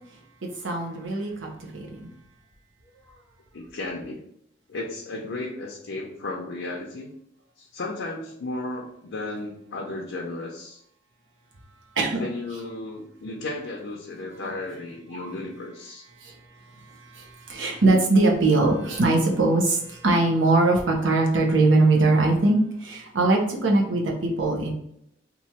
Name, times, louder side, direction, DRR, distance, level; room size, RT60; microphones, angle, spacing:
voice 1, 0.6-2.1 12.0-12.3 15.1-15.3 16.2-16.3 16.9-24.7, right 2 dB, 85° right, 0 dB, 0.8 m, -21 dB
voice 2, 3.5-4.2 4.7-7.1 7.6-10.8 12.2-16.0, left 2 dB, 85° left, -2 dB, 0.6 m, -34 dB
3.0 x 2.4 x 4.2 m, 0.75 s
head